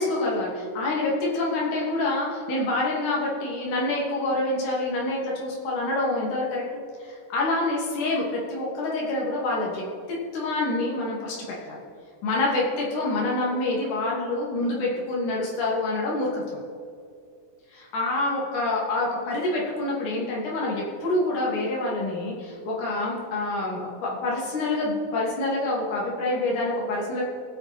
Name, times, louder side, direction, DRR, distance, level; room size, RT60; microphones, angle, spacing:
voice 1, 0.0-6.7 7.0-9.8 10.1-11.4 11.7-11.8 12.2-16.4 17.7-27.3, left 2 dB, 60° left, -4 dB, 3.9 m, -27 dB
19.5 x 8.9 x 4.3 m, 2.4 s
omnidirectional pair, 4.2 m